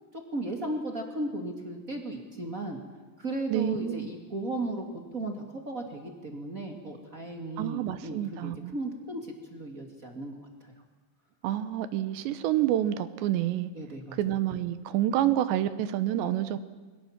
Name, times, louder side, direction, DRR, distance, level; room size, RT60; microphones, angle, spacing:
voice 1, 0.1-2.8 3.2-4.8 5.1-10.7 13.7-14.3, right 2 dB, 35° right, 3 dB, 1.4 m, -36 dB
voice 2, 3.5-4.1 7.6-8.7 11.4-13.7 14.1-16.6, right 12 dB, 75° right, 13 dB, 3.0 m, -28 dB
28.5 x 22.0 x 7.4 m, 1.3 s
omnidirectional pair, 5.3 m